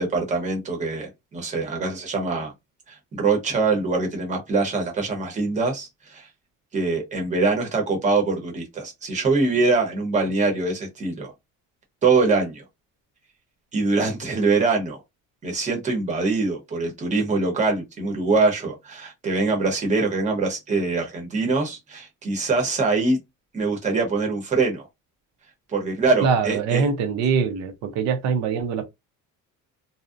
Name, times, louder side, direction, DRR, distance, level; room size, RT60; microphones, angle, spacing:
voice 1, 0.0-2.5 2.9-6.3 6.7-11.3 12.0-12.6 13.7-15.0 15.4-23.2 23.5-24.9 25.7-26.9, right 3 dB, 20° right, 0.8 m, -23 dB
voice 2, 26.2-28.9, right 6 dB, 55° right, 0.5 m, -23 dB
2.6 x 2.0 x 2.4 m
cardioid pair, 175°, 32 cm